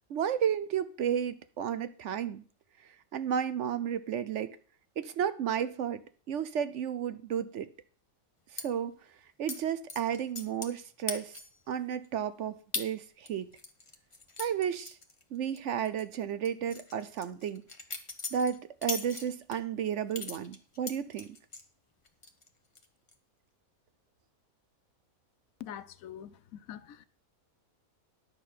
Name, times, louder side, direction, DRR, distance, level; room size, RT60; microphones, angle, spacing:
voice 1, 0.1-2.4 3.1-4.6 5.0-7.7 8.5-9.0 9.4-11.3 11.7-13.5 14.4-15.0 15.3-17.6 18.3-21.3, right 8 dB, 65° right, 0.9 m, -32 dB
sound 1, 8.6-8.7 9.5-9.6 9.9-10.8 11.1-11.6 12.0-12.1 12.7-12.9 13.3-15.6 15.8-16.0 16.4-19.6 20.1-21.6 22.0-22.5 22.7-23.1, left 3 dB, 25° left, 1.0 m, -39 dB
voice 2, 25.6-27.1, left 10 dB, 75° left, 1.1 m, -44 dB
11.0 x 6.0 x 6.6 m
omnidirectional pair, 1.5 m